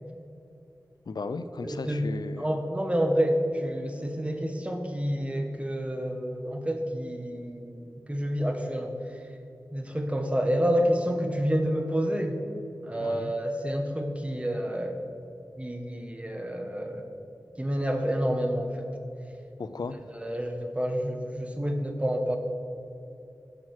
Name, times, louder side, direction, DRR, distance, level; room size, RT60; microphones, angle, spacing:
voice 1, 1.1-2.5 13.0-13.3 19.6-20.0, left 3 dB, 75° left, 11 dB, 0.5 m, -35 dB
voice 2, 1.6-2.1 2.4-9.0 9.7-12.4 12.8-15.0 15.6-17.1 17.6-18.9 20.2-22.4, equal, 15° right, 4 dB, 1.2 m, -29 dB
11.5 x 6.1 x 6.4 m, 2.7 s
wide cardioid pair, 80°, 7 cm